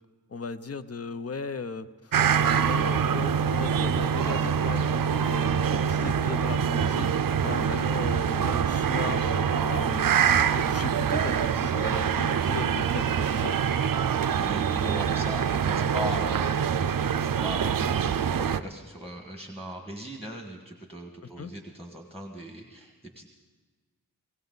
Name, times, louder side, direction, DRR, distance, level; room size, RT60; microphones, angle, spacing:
voice 1, 0.3-10.2 10.5-13.6 21.2-21.5, left 4 dB, 40° left, 12 dB, 0.6 m, -37 dB
sound 1, 2.1-18.6, right 7 dB, 60° right, 0.5 m, -25 dB
voice 2, 14.3-23.3, equal, 5° left, 2 dB, 1.6 m, -39 dB
20.0 x 17.0 x 4.0 m, 1.4 s
wide cardioid pair, 80°, 38 cm